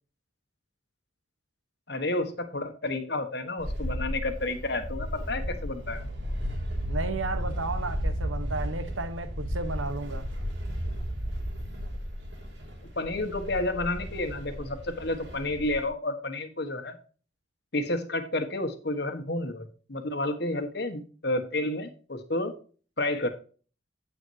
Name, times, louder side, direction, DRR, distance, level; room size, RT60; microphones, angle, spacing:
voice 1, 1.9-6.0 13.0-17.0 17.7-22.5 23.0-23.3, left 2 dB, 55° left, 1.4 m, -30 dB
sound 1, 3.6-15.9, equal, 65° right, 3.0 m, -34 dB
voice 2, 6.9-10.3, right 3 dB, 90° right, 1.2 m, -33 dB
9.4 x 8.5 x 2.8 m
head